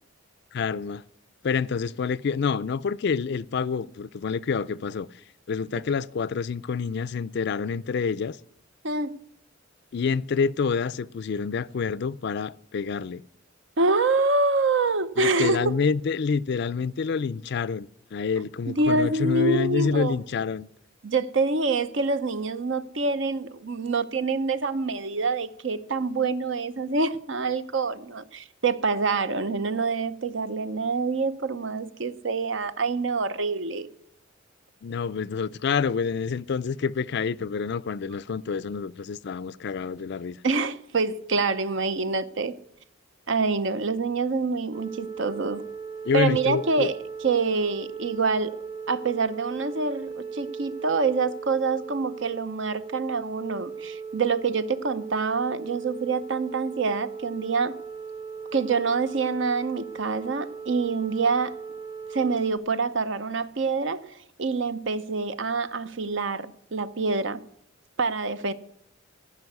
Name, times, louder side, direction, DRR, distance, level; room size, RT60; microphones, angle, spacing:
voice 1, 0.5-1.0 1.4-5.1 5.5-8.4 9.9-13.2 15.2-20.7 34.8-40.4 46.0-46.9, left 5 dB, 55° left, 0.4 m, -27 dB
voice 2, 8.8-9.2 13.8-15.7 18.7-20.2 21.0-33.9 40.4-42.6 43.3-45.7 46.1-48.6 48.9-57.8 58.5-61.5 62.1-67.4 68.0-68.5, right 4 dB, 65° right, 0.8 m, -26 dB
sound 1, 44.7-62.6, right 5 dB, 20° right, 0.9 m, -38 dB
14.5 x 5.8 x 9.4 m
head